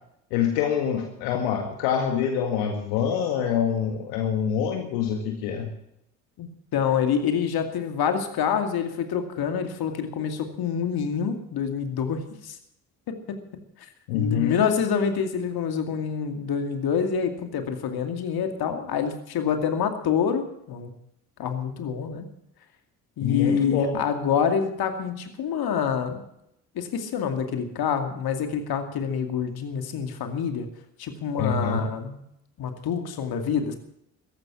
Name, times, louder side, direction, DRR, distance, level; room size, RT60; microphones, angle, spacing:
voice 1, 0.3-5.7 14.1-14.6 23.2-24.0 31.4-31.8, left 8 dB, 75° left, 3 dB, 2.0 m, -25 dB
voice 2, 6.4-12.6 13.1-13.4 14.1-20.9 21.4-22.3 23.2-26.2 26.8-30.7 31.0-32.2 32.6-33.7, left 7 dB, 55° left, 6 dB, 2.5 m, -27 dB
14.5 x 11.5 x 7.2 m, 0.77 s
hypercardioid pair, 50°, 43 cm